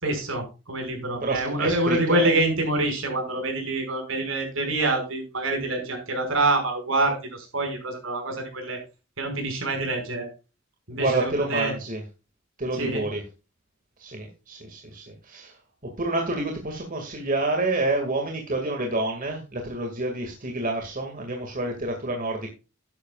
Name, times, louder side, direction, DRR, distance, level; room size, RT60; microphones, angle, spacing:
voice 1, 0.0-8.8 9.2-10.3 10.9-11.7 12.7-13.1, right 2 dB, 70° right, 3 dB, 5.5 m, -26 dB
voice 2, 1.2-2.4 10.9-12.0 12.6-13.2 14.0-15.5 16.0-22.5, right 2 dB, 40° right, 2 dB, 2.1 m, -28 dB
12.5 x 10.5 x 2.4 m, 0.30 s
head